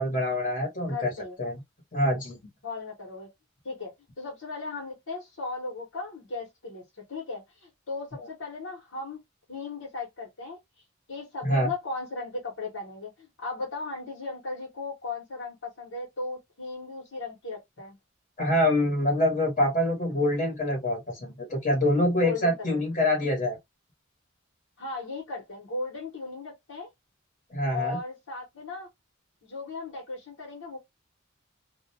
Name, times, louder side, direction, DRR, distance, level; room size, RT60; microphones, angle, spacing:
voice 1, 0.0-1.1 1.4-1.6 1.9-2.4 11.4-11.7 18.4-23.6 27.5-28.0, left 1 dB, 40° left, 1.0 m, -25 dB
voice 2, 0.9-1.4 2.6-3.3 3.6-6.8 7.1-9.2 9.5-10.6 11.1-18.0 22.2-22.8 24.8-26.9 27.7-28.9 29.4-30.8, left 3 dB, 80° left, 1.1 m, -36 dB
2.4 x 2.2 x 2.6 m
head